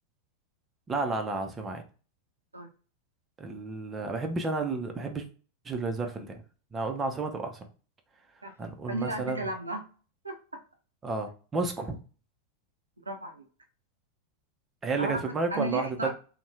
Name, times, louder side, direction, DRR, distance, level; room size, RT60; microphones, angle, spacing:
voice 1, 0.9-1.8 3.4-5.2 5.7-6.4 6.7-7.7 8.6-9.4 11.0-12.0 14.8-16.1, right 3 dB, 20° right, 5 dB, 0.5 m, -31 dB
voice 2, 8.9-9.8 10.2-10.6 13.1-13.4 15.0-16.1, right 2 dB, 80° right, 5 dB, 0.4 m, -34 dB
2.6 x 2.1 x 3.1 m, 0.37 s
figure-of-eight pair, 90°, 0 cm